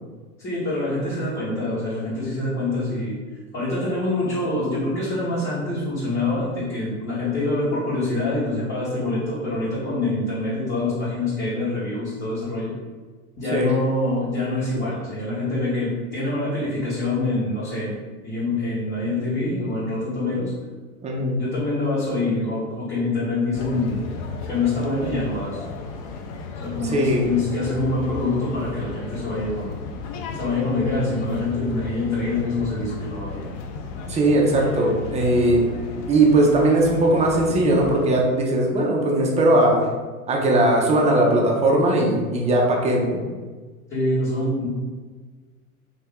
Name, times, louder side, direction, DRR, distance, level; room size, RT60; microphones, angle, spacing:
voice 1, 0.4-3.2 3.5-12.7 13.4-20.5 21.4-24.1 24.5-25.6 26.6-29.8 30.3-33.4 43.9-44.7, left 2 dB, 25° left, -11 dB, 1.4 m, -25 dB
voice 2, 21.0-21.4 26.9-27.3 34.1-35.7 36.1-39.8 40.3-43.2, right 1 dB, 15° right, -1 dB, 0.5 m, -19 dB
sound 1, 23.5-38.1, left 4 dB, 45° left, 0.5 m, -34 dB
2.9 x 2.8 x 3.5 m, 1.4 s
hypercardioid pair, 105°, 43 cm